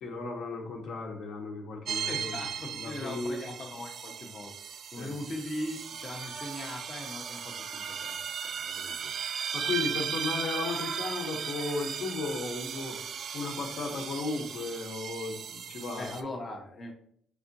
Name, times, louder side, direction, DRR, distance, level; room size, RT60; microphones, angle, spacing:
voice 1, 0.0-2.4 2.7-3.4 4.9-5.1 9.5-13.0 13.3-16.1, left 3 dB, 75° left, 1 dB, 0.9 m, -35 dB
sound 1, 1.9-16.2, right 7 dB, 55° right, 0.4 m, -37 dB
voice 2, 2.0-4.5 4.9-9.1 16.0-16.9, left 1 dB, 40° left, 0 dB, 0.6 m, -40 dB
4.8 x 3.5 x 2.7 m, 0.65 s
cardioid pair, 115°, 0 cm